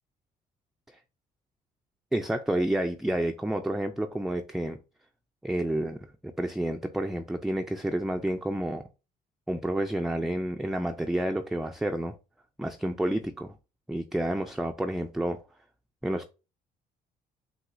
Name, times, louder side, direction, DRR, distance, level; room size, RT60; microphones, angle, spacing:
voice 1, 2.1-4.8 5.4-6.0 6.2-8.8 9.5-12.1 12.6-13.5 13.9-15.4 16.0-16.3, right 1 dB, ahead, 0.3 m, -29 dB
7.7 x 2.7 x 2.5 m
cardioid pair, 110°, 17 cm